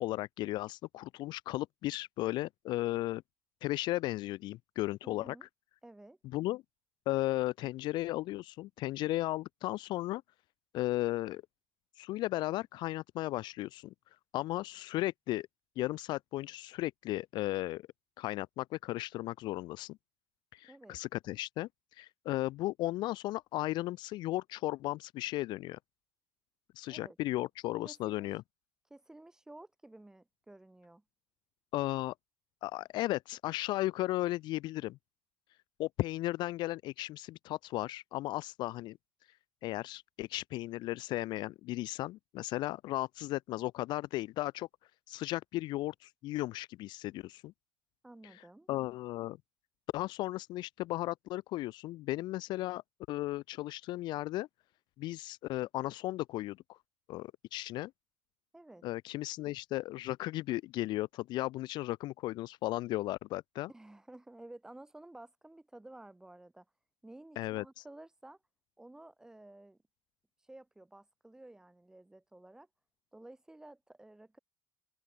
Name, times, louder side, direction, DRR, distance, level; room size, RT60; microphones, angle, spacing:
voice 1, 0.0-3.2 3.6-5.4 6.3-6.6 7.1-10.2 10.7-11.4 12.0-13.9 14.3-15.5 15.8-17.8 18.2-20.0 20.5-25.8 26.8-28.4 31.7-32.1 32.6-35.0 35.8-39.0 39.6-44.7 45.1-47.5 48.7-49.4 49.9-52.8 53.1-54.5 55.0-56.8 57.1-57.9 58.8-63.7 67.4-67.6, left 17 dB, 60° left, 0.4 m, -35 dB
voice 2, 5.0-5.5 5.8-6.2 20.7-21.0 26.9-27.2 27.8-28.3 28.9-31.0 48.0-48.7 58.5-58.8 63.7-66.7 67.0-68.4 68.8-69.8 70.4-72.7 73.1-74.4, right 2 dB, 5° right, 1.9 m, -53 dB
cardioid pair, 140°, 9 cm